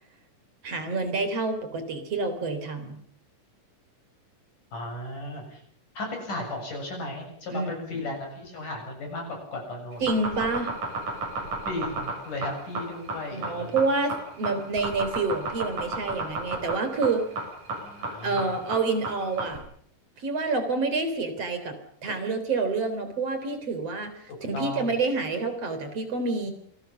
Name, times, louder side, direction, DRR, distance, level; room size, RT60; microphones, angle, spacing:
voice 1, 0.6-3.0 7.5-7.9 10.0-10.7 13.3-17.3 18.2-19.6 20.2-21.7 22.0-26.5, right 3 dB, 50° right, 9 dB, 4.5 m, -28 dB
voice 2, 4.7-5.6 6.0-10.1 11.7-13.8 17.7-18.6 24.3-24.9, left 2 dB, 70° left, 2 dB, 8.8 m, -35 dB
sound 1, 9.9-19.6, right 3 dB, 65° right, 9.2 m, -32 dB
27.0 x 20.0 x 7.1 m, 0.64 s
omnidirectional pair, 3.7 m